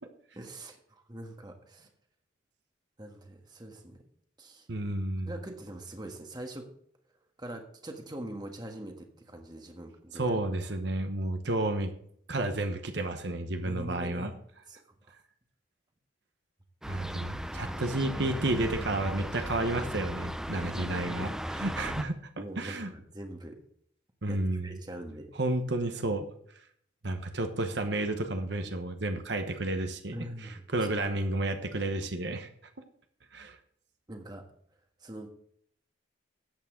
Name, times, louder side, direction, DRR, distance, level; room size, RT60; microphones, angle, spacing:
voice 1, 0.3-0.8 1.1-1.9 3.0-4.0 4.4-4.7 5.3-6.7 7.4-10.4 13.6-14.3 14.7-14.8 20.6-21.4 22.4-23.6 24.3-25.3 30.1-30.6 34.1-34.4 35.0-35.3, right 1 dB, 20° right, 3 dB, 1.4 m, -43 dB
voice 2, 4.7-5.3 10.1-11.9 12.3-14.3 16.9-22.9 24.2-24.7 25.3-26.3 27.0-32.5 33.3-33.6, right 2 dB, 60° right, 6 dB, 1.1 m, -31 dB
sound 1, 16.8-22.0, equal, 5° right, 0.4 m, -36 dB
13.0 x 8.7 x 3.8 m, 0.64 s
head